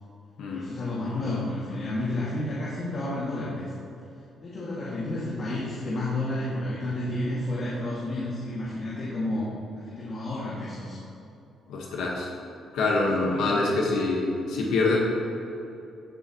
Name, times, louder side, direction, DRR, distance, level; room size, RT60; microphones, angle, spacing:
voice 1, 0.5-3.7 4.4-11.0 13.1-13.8, left 1 dB, 50° left, -8 dB, 2.4 m, -31 dB
voice 2, 11.7-12.3 12.7-15.0, left 3 dB, 80° left, -2 dB, 1.6 m, -25 dB
15.5 x 7.0 x 3.2 m, 2.7 s
cardioid pair, 90°, 0 cm